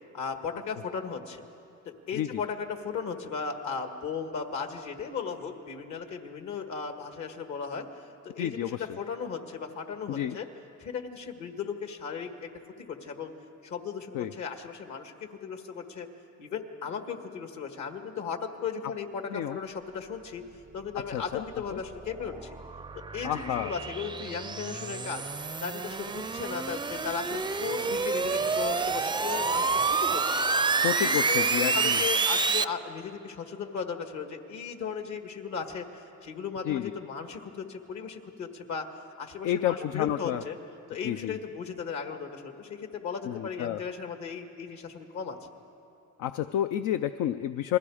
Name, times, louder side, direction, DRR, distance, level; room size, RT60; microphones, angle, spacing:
voice 1, 0.1-1.5 1.9-10.5 10.8-12.5 12.9-13.3 13.6-16.1 16.4-20.4 20.7-22.5 23.1-25.2 25.6-30.4 30.9-38.9 39.2-40.6 40.9-45.4, left 6 dB, 70° left, 6 dB, 1.9 m, -36 dB
voice 2, 8.4-8.8 10.1-10.4 14.1-14.3 19.3-19.6 21.1-21.4 21.7-21.8 23.2-23.7 30.8-32.0 36.7-36.9 39.4-40.4 41.0-41.4 43.2-43.8 46.2-47.8, left 11 dB, 85° left, 10 dB, 0.5 m, -30 dB
sound 1, 21.3-32.6, right 4 dB, 15° right, 0.4 m, -28 dB
29.5 x 21.5 x 5.0 m, 2.8 s
cardioid pair, 90°, 30 cm